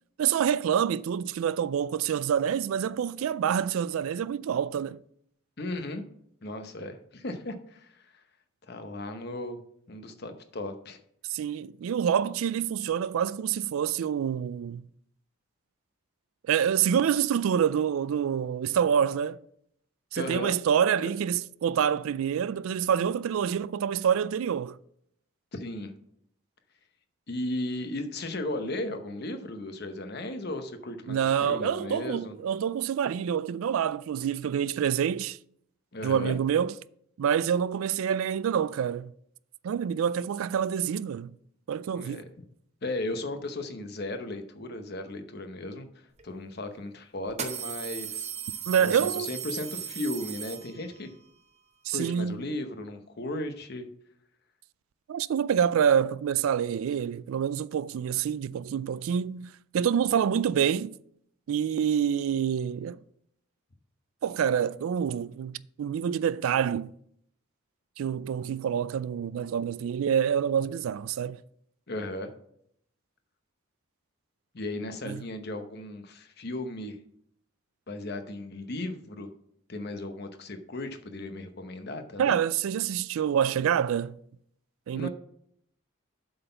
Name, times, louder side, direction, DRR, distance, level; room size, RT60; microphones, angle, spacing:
voice 1, 0.2-5.0 11.3-14.8 16.5-19.4 20.1-24.8 31.1-35.4 36.0-36.7 37.2-39.1 39.6-41.3 41.7-42.2 48.7-49.3 51.9-52.4 55.1-60.9 61.5-63.0 64.2-66.9 68.0-71.4 75.1-75.2 82.2-84.2 84.9-85.1, right 8 dB, 75° right, 0.3 m, -27 dB
voice 2, 5.6-6.0 6.4-8.2 8.7-9.6 9.9-11.0 20.2-20.5 21.0-21.1 25.5-25.9 27.3-32.3 35.9-36.4 41.9-42.3 42.8-45.9 46.2-48.3 48.8-51.1 51.9-53.9 71.9-72.3 74.5-77.0 77.9-79.3 79.7-82.4 84.9-85.1, left 1 dB, 50° left, 0.8 m, -36 dB
sound 1, 46.2-46.3 47.3-51.1, right 9 dB, 30° right, 0.7 m, -36 dB
7.8 x 4.0 x 6.7 m
head